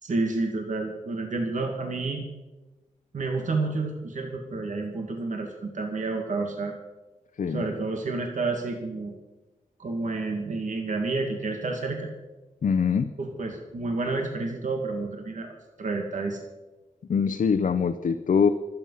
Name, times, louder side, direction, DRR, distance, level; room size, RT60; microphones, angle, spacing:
voice 1, 0.0-2.3 3.1-6.7 7.5-9.2 9.8-12.1 13.2-15.5 15.8-16.4, right 3 dB, 65° right, 3 dB, 2.1 m, -30 dB
voice 2, 12.6-13.1 17.1-18.5, left 6 dB, 70° left, 6 dB, 0.7 m, -23 dB
24.5 x 9.1 x 5.6 m, 1.1 s
wide cardioid pair, 125°, 14 cm